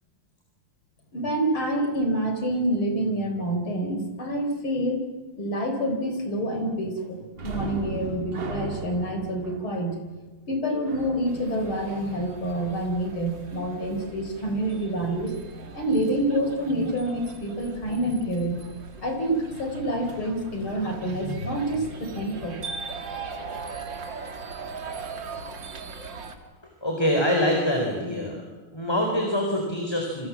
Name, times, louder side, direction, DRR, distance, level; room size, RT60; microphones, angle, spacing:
voice 1, 1.1-5.1 5.4-7.2 7.4-10.0 10.5-15.4 15.7-18.6 19.0-22.7, right 1 dB, 85° left, 5 dB, 4.9 m, -27 dB
sound 1, 7.4-12.7 20.1-20.2 20.6-20.8, right 5 dB, 40° right, 0.9 m, -37 dB
sound 2, 11.3-26.4, right 4 dB, 60° right, 2.9 m, -40 dB
voice 2, 26.8-28.4 28.7-30.3, equal, 10° left, 1 dB, 4.4 m, -24 dB
28.5 x 25.5 x 7.4 m, 1.3 s
omnidirectional pair, 2.2 m